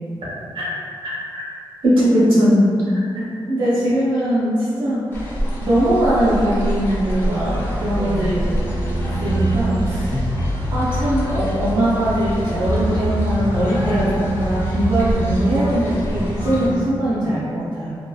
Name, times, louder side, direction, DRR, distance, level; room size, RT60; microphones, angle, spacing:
voice 1, 1.0-1.4 1.8-3.3 10.1-10.2, equal, 75° right, -7 dB, 0.9 m, -17 dB
voice 2, 3.5-5.1 5.6-8.5 9.0-10.3 10.7-18.0, right 1 dB, 60° right, -12 dB, 0.5 m, -21 dB
sound 1, 5.1-16.7, equal, 25° left, 0.6 m, -28 dB
sound 2, 7.4-16.8, equal, 70° left, 0.8 m, -25 dB
2.7 x 2.2 x 2.3 m, 2.4 s
wide cardioid pair, 125°, 9 cm